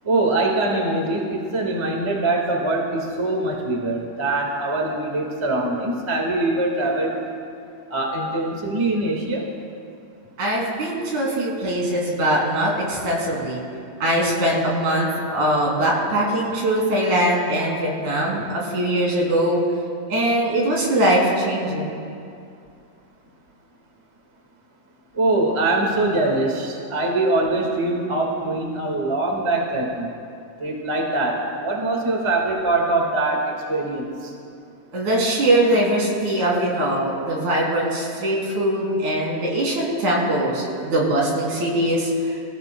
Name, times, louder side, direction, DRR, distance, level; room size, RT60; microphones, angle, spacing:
voice 1, 0.0-7.3 7.9-9.5 25.1-30.1 30.6-34.1, right 2 dB, 25° right, 0 dB, 0.6 m, -23 dB
voice 2, 10.4-13.6 14.0-19.6 20.1-22.0 34.9-42.4, right 1 dB, 65° right, -3 dB, 4.0 m, -21 dB
25.5 x 15.0 x 2.2 m, 2.5 s
omnidirectional pair, 3.7 m